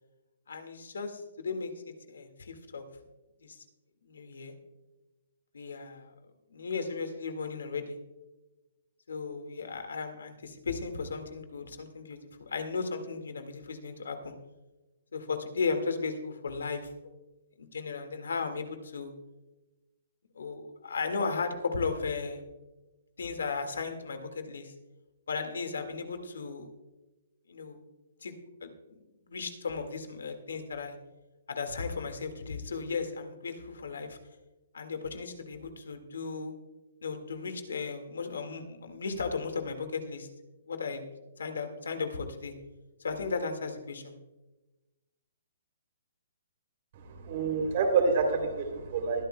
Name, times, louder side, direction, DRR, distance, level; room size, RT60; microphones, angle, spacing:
voice 1, 0.5-2.8 3.4-3.6 4.0-4.6 5.5-6.1 6.5-8.0 9.1-14.3 15.1-16.9 17.6-19.1 20.4-22.5 23.2-24.7 25.3-26.7 27.5-27.8 28.2-28.3 28.6-29.0 29.3-31.0 31.5-34.2 34.7-36.5 37.0-40.3 40.7-41.0 41.4-42.5 43.0-44.2, left 4 dB, 85° left, 6 dB, 1.8 m, -35 dB
voice 2, 47.2-49.2, right 4 dB, 45° right, 4 dB, 3.0 m, -27 dB
21.5 x 11.0 x 2.2 m, 1.1 s
hypercardioid pair, 160°, 0 cm